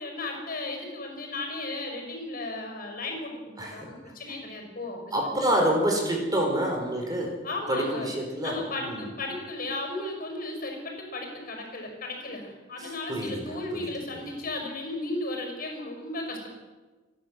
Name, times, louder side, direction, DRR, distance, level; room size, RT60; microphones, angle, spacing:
voice 1, 0.0-5.5 7.4-8.1 8.4-16.4, left 2 dB, 50° left, 3 dB, 5.9 m, -35 dB
voice 2, 3.6-3.9 5.1-7.4 7.7-9.1 12.8-13.9 14.2-14.3, right 1 dB, 20° right, 1 dB, 4.8 m, -28 dB
29.5 x 11.5 x 7.9 m, 1.3 s
head